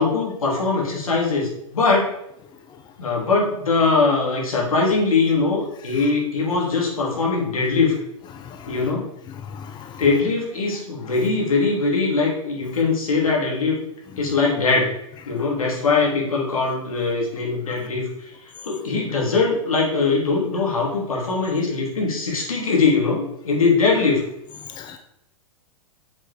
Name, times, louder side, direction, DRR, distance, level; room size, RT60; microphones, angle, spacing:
voice 1, 0.0-2.1 3.0-8.0 8.7-9.1 10.0-13.8 14.2-14.9 15.2-24.2, left 4 dB, 90° left, -2 dB, 3.2 m, -21 dB
voice 2, 8.3-8.7 9.4-10.0 17.7-17.8 24.8-25.0, left 7 dB, 25° left, 6 dB, 0.8 m, -38 dB
7.0 x 5.8 x 5.1 m, 0.79 s
hypercardioid pair, 120°, 17 cm